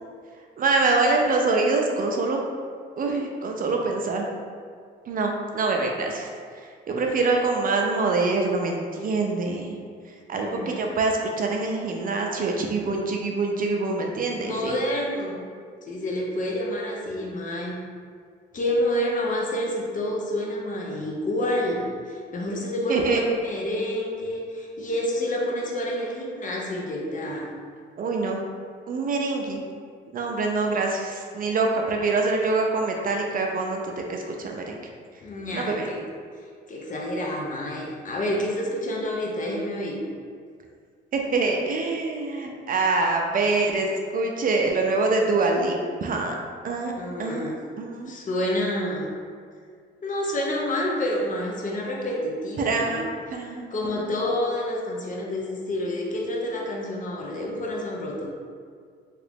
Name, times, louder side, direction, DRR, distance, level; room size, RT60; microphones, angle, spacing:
voice 1, 0.6-2.4 3.0-4.3 5.1-6.3 6.5-9.8 10.3-14.8 22.9-23.2 28.0-28.4 28.9-29.6 30.1-34.8 35.5-35.9 41.1-43.9 44.1-46.4 46.6-46.9 47.2-47.5 47.8-48.1 52.6-53.0 53.3-54.1, right 3 dB, 45° right, 1 dB, 0.4 m, -25 dB
voice 2, 10.3-10.8 14.4-15.4 15.8-17.8 18.5-27.5 35.2-36.0 36.7-40.0 47.0-47.6 48.1-49.1 50.0-53.0 53.7-58.3, left 1 dB, 40° left, -2 dB, 0.7 m, -28 dB
2.8 x 2.5 x 3.4 m, 2.1 s
cardioid pair, 90°, 20 cm